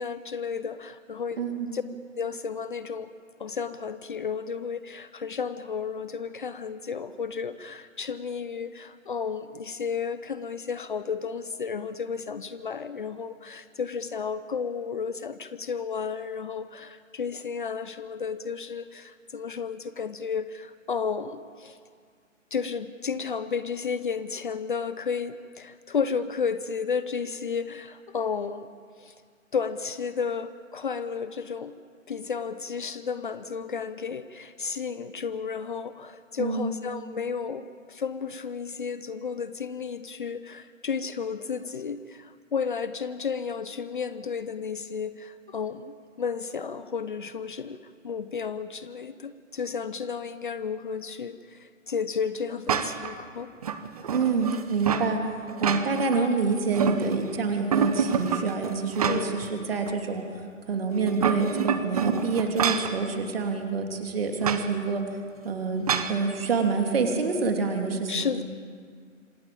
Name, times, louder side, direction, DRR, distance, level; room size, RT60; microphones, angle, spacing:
voice 1, 0.0-1.4 1.7-1.8 2.2-3.1 3.4-21.8 22.5-28.7 29.0-29.1 29.5-31.7 32.1-47.8 48.0-53.5 59.0-59.4 68.1-68.4, left 6 dB, 40° left, 13 dB, 0.8 m, -32 dB
voice 2, 1.4-1.8 36.4-36.7 54.1-55.3 55.6-65.0 65.4-68.3, right 4 dB, 45° right, 3 dB, 3.1 m, -27 dB
sound 1, 52.7-53.1 53.6-55.1 55.5-56.2 56.5-57.3 57.7-59.5 59.9-60.0 61.0-63.0 64.4-64.7 65.9-66.2, right 7 dB, 30° right, 1.0 m, -27 dB
26.5 x 15.5 x 8.9 m, 2.1 s
figure-of-eight pair, 135°, 40 cm